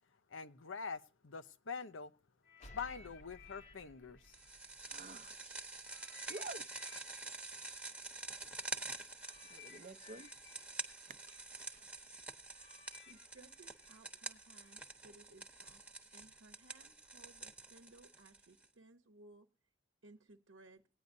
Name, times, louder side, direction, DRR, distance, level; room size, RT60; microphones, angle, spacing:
voice 1, 0.3-2.1 2.7-4.4, left 5 dB, 85° left, 0.8 m, -45 dB
sound 1, 2.4-5.4 5.8-14.8 15.5-15.7, left 7 dB, 70° left, 1.6 m, -62 dB
sound 2, 2.6-6.1, equal, 35° left, 0.9 m, -60 dB
sound 3, 4.3-18.6, right 3 dB, 5° right, 1.0 m, -47 dB
voice 2, 4.8-5.6 6.3-6.6 9.4-10.3 10.9-11.2 11.5-11.8, right 3 dB, 40° right, 0.7 m, -50 dB
voice 3, 12.9-15.8 16.1-19.5 20.0-20.8, right 2 dB, 80° right, 1.0 m, -61 dB
18.0 x 9.5 x 2.6 m
head